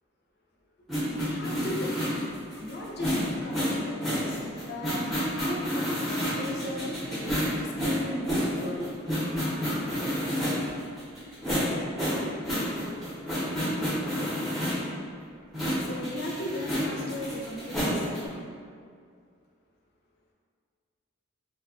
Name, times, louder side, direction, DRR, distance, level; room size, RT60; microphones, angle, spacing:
sound 1, 0.9-14.9 15.5-18.3, equal, ahead, 0.6 m, -29 dB
voice 1, 1.1-2.0 2.6-4.4 4.7-5.1 5.4-7.3 7.6-8.9 15.8-18.5, equal, 55° left, -2 dB, 0.4 m, -37 dB
2.5 x 2.2 x 2.3 m, 2.2 s
head